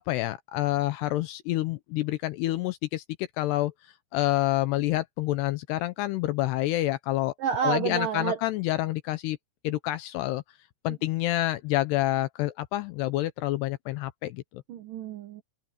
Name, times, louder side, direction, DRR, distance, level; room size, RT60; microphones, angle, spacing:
voice 1, 0.0-3.7 4.1-7.3 7.6-9.4 9.6-10.4 10.8-14.6, left 16 dB, 80° left, 2.6 m, -28 dB
voice 2, 7.4-8.4 14.7-15.4, right 7 dB, 65° right, 2.4 m, -29 dB
omnidirectional pair, 5.3 m